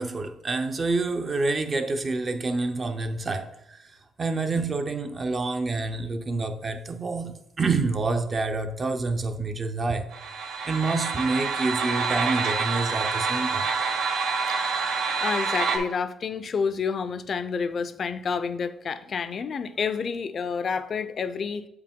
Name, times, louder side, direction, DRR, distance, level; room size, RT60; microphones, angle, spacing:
voice 1, 0.0-10.1 10.6-13.7, right 3 dB, 35° right, 0.7 m, -28 dB
sound 1, 10.1-15.8, right 5 dB, 75° right, 1.0 m, -27 dB
voice 2, 15.2-21.7, left 5 dB, 50° left, 0.5 m, -29 dB
7.5 x 4.8 x 3.7 m
cardioid pair, 90°, 0 cm